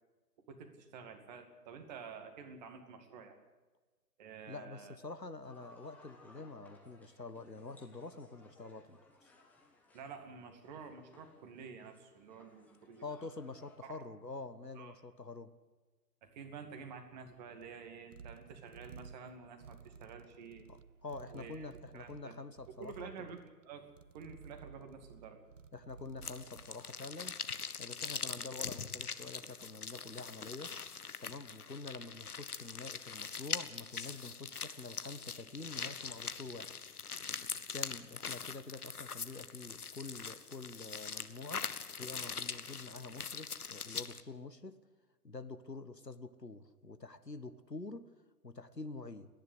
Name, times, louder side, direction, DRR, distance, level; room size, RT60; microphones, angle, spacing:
voice 1, 0.5-3.4 4.2-5.0 9.9-13.3 13.8-14.1 14.8-15.0 16.2-20.7 21.3-22.3 22.8-23.9 24.1-25.4, right 5 dB, 25° right, 6 dB, 2.3 m, -50 dB
voice 2, 4.5-9.3 13.0-15.5 20.7-23.1 25.7-27.4 27.8-30.7 31.2-36.7 37.7-44.8 45.2-48.0 48.4-49.3, left 3 dB, 90° left, 11 dB, 1.6 m, -47 dB
sound 1, 5.4-13.8, left 2 dB, 5° left, 1.3 m, -63 dB
sound 2, 16.8-27.4, right 6 dB, 50° right, 0.9 m, -56 dB
sound 3, 26.2-44.2, left 6 dB, 65° left, 1.4 m, -42 dB
29.5 x 11.0 x 8.2 m, 1.3 s
figure-of-eight pair, 135°, 48 cm